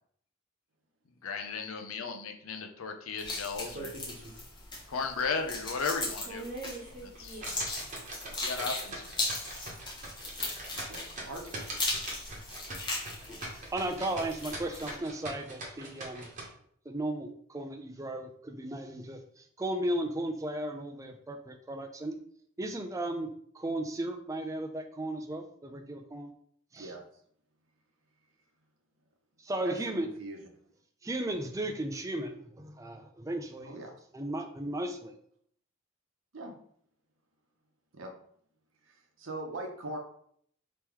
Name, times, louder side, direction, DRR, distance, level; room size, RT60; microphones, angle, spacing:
voice 1, 1.2-3.9 4.9-6.4 7.0-7.5 8.4-9.0, left 4 dB, 85° left, 5 dB, 0.6 m, -35 dB
sound 1, 3.2-15.0, left 2 dB, 20° left, 1.1 m, -38 dB
sound 2, 3.7-4.4 4.8-4.9 5.4-5.5 6.1-16.5, right 2 dB, 35° right, 1.1 m, -42 dB
voice 2, 13.7-16.3 16.9-22.2 22.6-23.3 23.5-26.3 26.7-26.9 29.4-30.1 31.0-33.8 34.1-35.1, right 1 dB, 15° right, 6 dB, 0.4 m, -35 dB
voice 3, 26.8-27.2 29.6-30.4 33.6-33.9 36.3-36.5 37.9-38.1 38.8-40.0, right 2 dB, 65° right, 2 dB, 0.9 m, -41 dB
3.6 x 3.0 x 4.5 m, 0.65 s
head